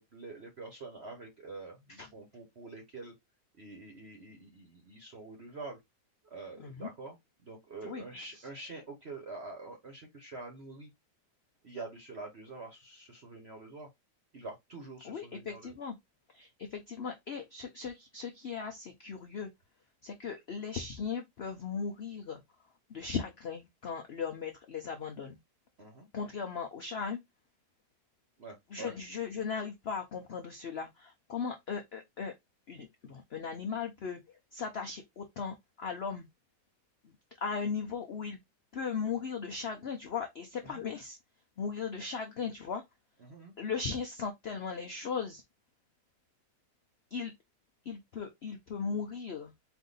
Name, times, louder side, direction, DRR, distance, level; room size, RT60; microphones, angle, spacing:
voice 1, 0.0-3.1 3.6-5.8 6.2-7.2 7.4-10.9 11.6-13.9 14.3-15.7 25.8-26.1 28.4-28.9 40.6-40.8 43.2-43.5, right 3 dB, 45° right, 1.0 m, -46 dB
voice 2, 7.8-8.5 15.0-16.0 16.3-19.5 20.0-22.4 22.9-25.4 26.1-27.2 28.7-32.3 32.7-36.3 37.4-38.4 38.7-41.2 41.6-42.8 43.6-45.4 47.1-47.3 47.8-49.5, left 6 dB, 80° left, 0.5 m, -37 dB
4.5 x 2.6 x 3.9 m
omnidirectional pair, 1.9 m